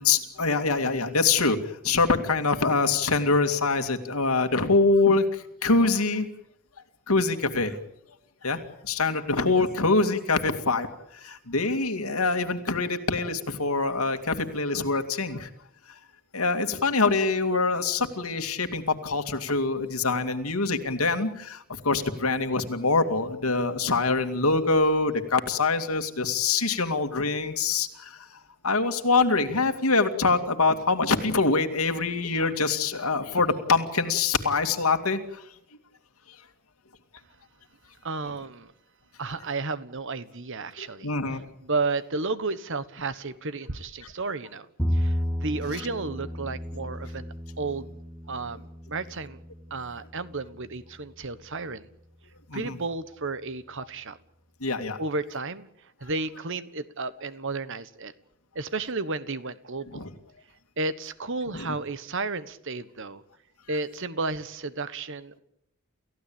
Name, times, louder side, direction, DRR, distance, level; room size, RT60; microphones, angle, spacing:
voice 1, 0.0-6.3 7.1-7.8 8.4-10.9 11.1-15.5 15.9-16.0 16.3-35.4 40.8-41.4 52.5-52.8 54.6-55.0 59.9-60.1 61.5-61.7, left 3 dB, 80° left, 7 dB, 2.4 m, -25 dB
voice 2, 38.0-38.7 39.2-41.1 41.6-44.7 44.9-47.9 48.3-49.4 49.7-51.9 52.5-54.2 55.0-55.7 56.0-58.1 58.5-60.1 60.8-63.2 63.7-65.4, right 3 dB, 60° right, 14 dB, 1.3 m, -32 dB
Bowed string instrument, 44.8-51.1, equal, 5° left, 1.6 m, -33 dB
29.0 x 15.5 x 8.7 m, 0.77 s
head